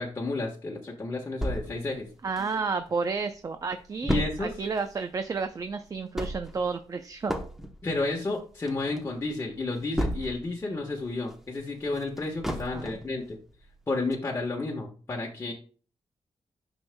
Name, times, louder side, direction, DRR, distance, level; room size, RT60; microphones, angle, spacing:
voice 1, 0.0-2.1 4.0-4.5 7.8-13.4 13.9-15.5, left 3 dB, 25° left, -2 dB, 1.2 m, -31 dB
sound 1, 1.4-2.9 3.3-3.4 3.6-10.6 11.0-13.2 13.6-13.7 14.1-14.2, equal, 5° right, 0.9 m, -34 dB
voice 2, 2.2-7.3 12.7-12.9, right 4 dB, 35° right, 8 dB, 0.5 m, -31 dB
9.8 x 6.2 x 2.2 m, 0.40 s
wide cardioid pair, 150°, 11 cm